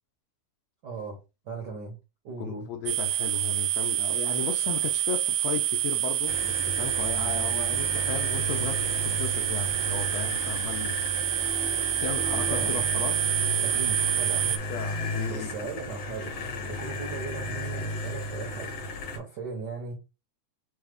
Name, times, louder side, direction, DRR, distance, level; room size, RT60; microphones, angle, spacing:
voice 1, 0.8-2.0 2.2-2.7 12.5-12.8 13.6-14.6 15.3-16.3 16.7-18.8 19.0-20.0, right 4 dB, 60° right, 1.1 m, -38 dB
voice 2, 2.4-10.9 12.0-13.3 14.4-15.5 16.6-16.8, left 8 dB, 75° left, 1.6 m, -36 dB
sound 1, 2.9-14.6, right 13 dB, 85° right, 2.0 m, -27 dB
sound 2, 6.3-19.2, left 1 dB, 60° left, 1.9 m, -34 dB
4.8 x 2.3 x 4.9 m
omnidirectional pair, 3.5 m